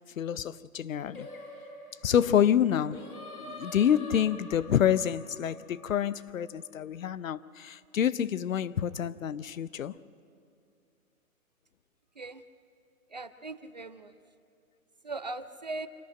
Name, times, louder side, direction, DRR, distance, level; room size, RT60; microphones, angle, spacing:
voice 1, 0.2-1.3 2.0-3.0 3.4-9.9, left 9 dB, 65° left, 0.7 m, -27 dB
Singing, 1.1-6.4, left 1 dB, 85° left, 4.1 m, -46 dB
voice 2, 13.1-14.1 15.0-15.9, right 3 dB, 35° right, 0.4 m, -39 dB
25.5 x 11.5 x 8.8 m
hypercardioid pair, 145°, 43 cm